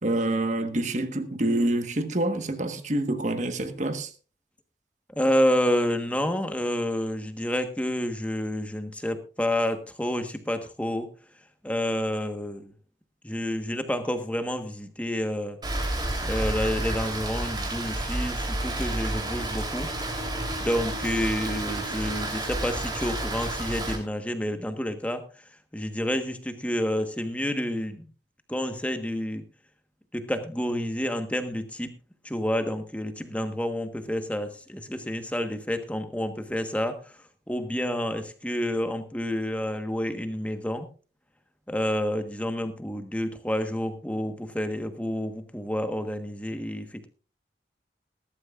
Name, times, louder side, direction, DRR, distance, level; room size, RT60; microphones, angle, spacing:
voice 1, 0.0-4.1, right 1 dB, 40° right, 1.4 m, -27 dB
voice 2, 5.2-11.1 11.6-12.7 13.2-15.6 16.2-19.9 20.6-25.2 25.7-28.1 28.5-29.4 30.1-32.0 32.2-37.1 37.5-40.9 41.7-47.1, equal, 10° left, 1.3 m, -29 dB
Rain, 15.6-24.0, right 1 dB, 25° right, 3.3 m, -30 dB
20.0 x 12.0 x 2.5 m
head